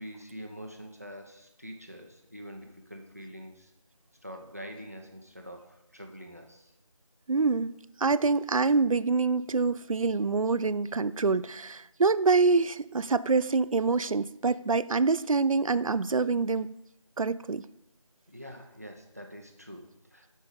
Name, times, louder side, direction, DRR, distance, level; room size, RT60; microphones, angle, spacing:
voice 1, 0.0-3.7 4.2-6.7 18.3-20.3, equal, 30° right, 4 dB, 0.8 m, -45 dB
voice 2, 7.3-7.7 8.0-16.7 17.2-17.7, right 4 dB, 80° right, 16 dB, 0.4 m, -26 dB
8.2 x 5.3 x 5.3 m, 0.86 s
figure-of-eight pair, 180°, 17 cm